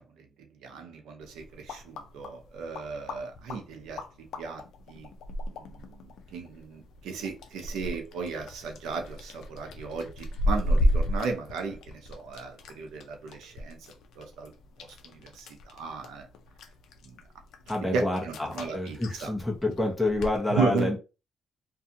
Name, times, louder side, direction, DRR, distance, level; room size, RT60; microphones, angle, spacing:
voice 1, 0.6-4.0 4.4-4.6 4.9-5.1 5.5-6.0 6.3-13.8 14.2-14.5 15.0-16.3 17.9-19.3 20.5-21.0, right 4 dB, 85° right, 4 dB, 0.7 m, -35 dB
sound 1, 1.2-20.4, equal, 80° left, 0.4 m, -34 dB
voice 2, 17.7-21.0, left 2 dB, 5° left, -1 dB, 0.9 m, -28 dB
2.6 x 2.3 x 2.7 m, 0.30 s
cardioid pair, 90°, 0 cm